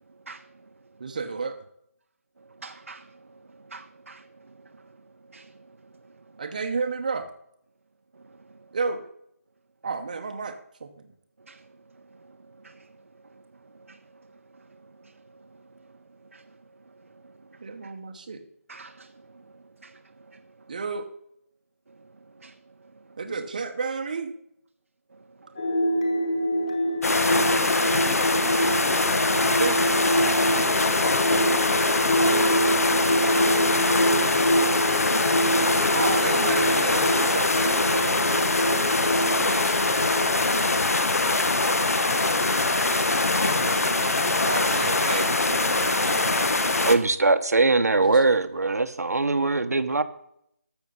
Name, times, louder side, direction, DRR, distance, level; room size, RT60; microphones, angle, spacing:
voice 1, 1.0-1.6 6.4-7.3 8.7-9.0 9.8-11.1 17.6-18.4 20.7-21.1 23.2-24.3 29.6-29.9 35.9-38.3 39.0-39.8 43.5-46.9 48.1-48.2, right 4 dB, 30° right, 0.9 m, -32 dB
voice 2, 2.6-4.8 5.3-5.6 8.2-8.4 11.5-11.6 12.1-12.9 13.3-13.4 13.8-14.0 14.6-15.5 16.3-16.4 17.2-17.9 18.7-19.5 19.8-20.0 20.3-20.4 22.4-22.6 26.1-26.3 26.6-26.7, right 3 dB, 60° right, 0.6 m, -49 dB
sound 1, 25.6-40.5, equal, 25° left, 1.2 m, -26 dB
sound 2, 27.0-47.0, left 3 dB, 70° left, 1.2 m, -23 dB
voice 3, 46.8-50.0, right 3 dB, 85° right, 1.0 m, -21 dB
13.0 x 7.0 x 5.4 m
figure-of-eight pair, 175°, 8 cm